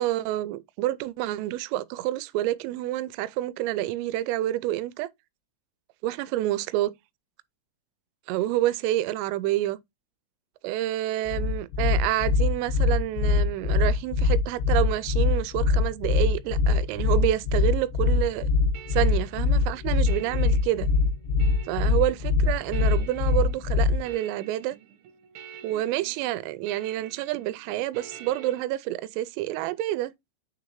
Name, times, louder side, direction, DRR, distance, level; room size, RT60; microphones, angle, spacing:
voice 1, 0.0-5.1 6.0-6.9 8.3-9.8 10.6-18.5 18.9-20.9 21.7-24.8 25.6-30.1, right 14 dB, 85° right, 3.2 m, -28 dB
sound 1, 11.3-24.1, left 4 dB, 85° left, 3.2 m, -23 dB
sound 2, 18.4-28.6, right 8 dB, 65° right, 2.8 m, -48 dB
9.3 x 3.8 x 3.0 m
omnidirectional pair, 5.8 m